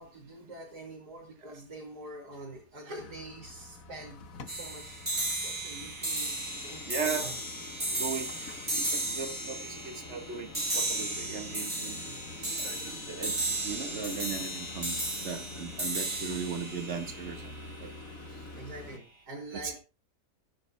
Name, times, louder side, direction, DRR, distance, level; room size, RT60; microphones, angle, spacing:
voice 1, 0.0-7.4 7.8-8.3 9.7-9.9 12.0-12.2 18.5-19.8, right 1 dB, 90° right, -5 dB, 3.9 m, -46 dB
sound 1, 3.0-19.0, left 3 dB, 60° left, 1.6 m, -47 dB
sound 2, 4.5-17.9, right 1 dB, 20° right, 3.8 m, -35 dB
voice 2, 6.9-7.2 8.0-8.3 8.7-10.5 10.8-12.0 12.6-13.4 13.6-17.4 17.8-17.9, right 6 dB, 45° right, 5 dB, 2.0 m, -37 dB
19.0 x 10.5 x 2.3 m, 0.28 s
omnidirectional pair, 1.7 m